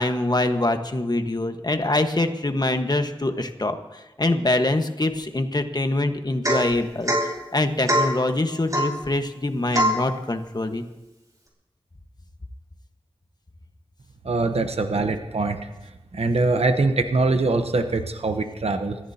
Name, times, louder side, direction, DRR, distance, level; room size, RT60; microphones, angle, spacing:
voice 1, 0.0-7.1 7.5-10.8, left 2 dB, 40° left, 7 dB, 1.4 m, -24 dB
Domestic sounds home sounds / Chink clink / Drip, 6.4-6.7 7.1-7.3 7.9-8.2 8.7-9.0 9.7-10.0, equal, 35° right, 4.6 m, -22 dB
voice 2, 14.2-15.6 16.1-19.0, right 3 dB, 80° right, 7 dB, 0.9 m, -23 dB
26.0 x 14.5 x 2.8 m, 1.0 s
cardioid pair, 40°, 10 cm